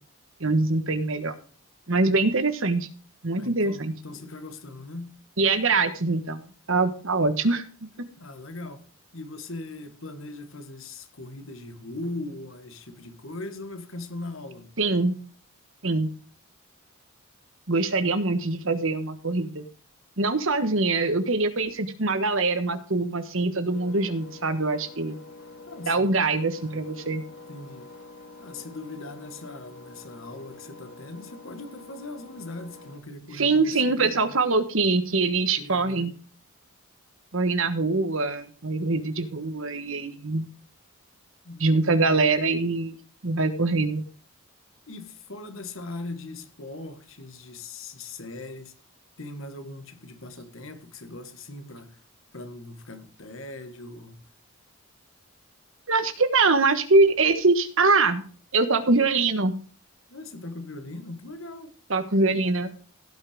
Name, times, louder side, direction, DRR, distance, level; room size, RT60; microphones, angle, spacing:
voice 1, 0.4-1.4 1.9-2.9 3.2-3.9 5.4-7.6 14.8-15.1 15.8-16.1 17.7-19.6 20.2-25.2 25.8-27.2 33.3-36.1 37.3-40.5 41.6-43.0 43.2-44.0 55.9-58.2 58.5-59.6 61.9-62.7, right 3 dB, 65° right, 1.4 m, -23 dB
voice 2, 2.0-2.4 3.4-5.2 8.2-8.8 9.1-14.8 25.7-26.4 27.5-27.9 28.4-34.3 35.6-36.1 41.4-41.6 41.9-42.0 44.9-48.7 49.2-52.0 52.3-54.2 60.1-61.7, left 2 dB, 65° left, 1.6 m, -40 dB
Engine, 23.7-33.0, left 2 dB, 80° left, 3.0 m, -46 dB
17.0 x 5.8 x 5.0 m
head